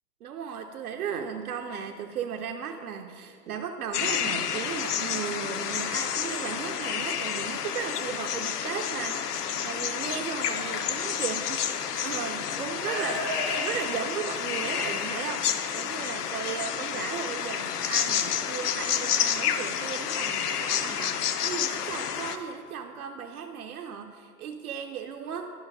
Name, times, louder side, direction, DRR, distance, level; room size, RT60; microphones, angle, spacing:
voice 1, 0.2-25.5, right 7 dB, 65° right, 4 dB, 0.6 m, -36 dB
sound 1, 3.9-22.4, left 8 dB, 70° left, 0.7 m, -30 dB
Livestock farm animals working animals, 10.4-11.1 12.0-12.1 12.7-14.8, equal, 10° left, 0.4 m, -35 dB
12.0 x 5.6 x 2.5 m, 2.2 s
figure-of-eight pair, 115°, 49 cm